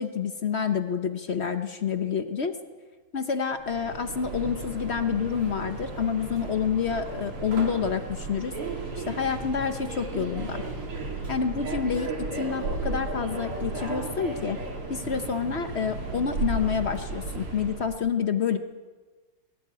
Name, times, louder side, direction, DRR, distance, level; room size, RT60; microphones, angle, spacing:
voice 1, 0.0-2.6 3.1-8.6 9.0-10.6 11.3-14.6 14.9-18.6, left 6 dB, 60° left, 8 dB, 0.6 m, -28 dB
Subway metro underground, 3.6-18.0, right 3 dB, 85° right, 3.7 m, -34 dB
20.5 x 13.5 x 9.5 m, 1.4 s
omnidirectional pair, 2.4 m